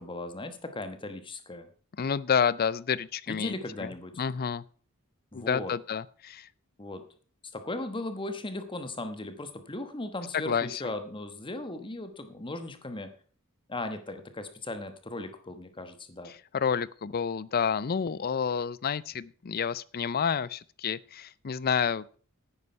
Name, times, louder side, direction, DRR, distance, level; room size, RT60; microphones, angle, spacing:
voice 1, 0.0-1.7 3.3-4.1 5.3-5.7 6.8-7.0 7.5-13.1 13.7-16.3, left 2 dB, 25° left, 1.1 m, -37 dB
voice 2, 2.0-3.6 3.8-3.9 4.2-4.6 5.3-6.5 10.3-10.8 16.3-22.2, left 7 dB, 45° left, 0.5 m, -29 dB
9.9 x 9.7 x 5.6 m
head